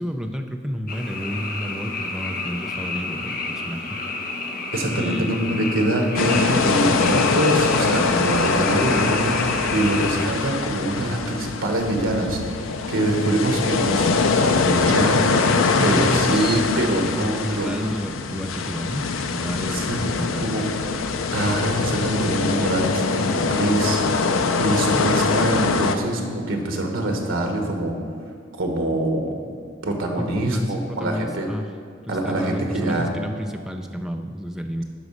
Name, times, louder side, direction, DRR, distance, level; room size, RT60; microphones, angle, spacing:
voice 1, 0.0-4.0 4.9-5.6 15.8-16.6 17.0-20.7 30.2-31.7 32.1-34.8, equal, 5° right, 4 dB, 0.4 m, -31 dB
Frog, 0.9-10.3, left 3 dB, 45° left, 1.0 m, -30 dB
voice 2, 4.7-17.7 19.7-20.1 20.4-20.7 21.3-24.0 24.3-28.0 28.5-29.4 29.8-31.5 32.1-33.1, right 1 dB, 85° right, 3 dB, 1.3 m, -24 dB
sound 1, 6.2-26.0, left 4 dB, 85° left, 0.5 m, -23 dB
11.5 x 4.1 x 6.3 m, 2.2 s
head